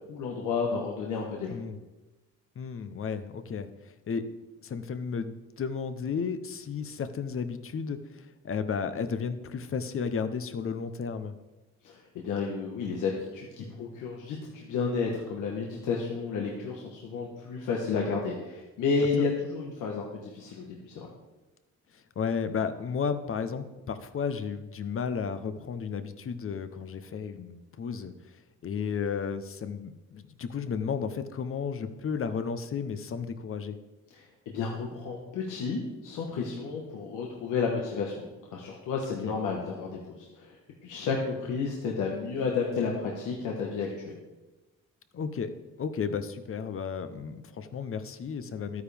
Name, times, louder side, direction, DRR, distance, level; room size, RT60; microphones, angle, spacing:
voice 1, 0.1-1.6 11.8-21.1 34.1-40.5 40.8-44.2, left 5 dB, 85° left, -1 dB, 1.5 m, -31 dB
voice 2, 1.5-1.8 2.6-4.2 4.6-11.3 21.9-28.4 28.6-33.8 39.2-39.3 45.1-45.5 45.8-48.8, left 6 dB, 45° left, 11 dB, 0.9 m, -33 dB
12.5 x 9.5 x 3.5 m, 1.1 s
cardioid pair, 90°, 30 cm